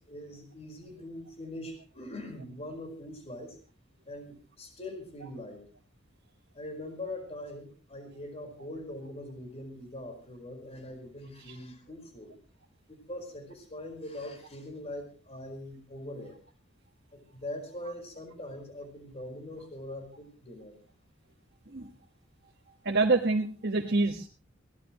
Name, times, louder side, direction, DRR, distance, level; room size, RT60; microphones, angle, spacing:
voice 1, 0.0-3.6 4.1-5.6 6.5-12.3 12.9-16.4 17.1-20.8, left 1 dB, 30° left, 5 dB, 4.7 m, -42 dB
voice 2, 22.8-24.3, right 3 dB, 55° right, -1 dB, 1.6 m, -26 dB
22.0 x 17.0 x 3.1 m, 0.34 s
head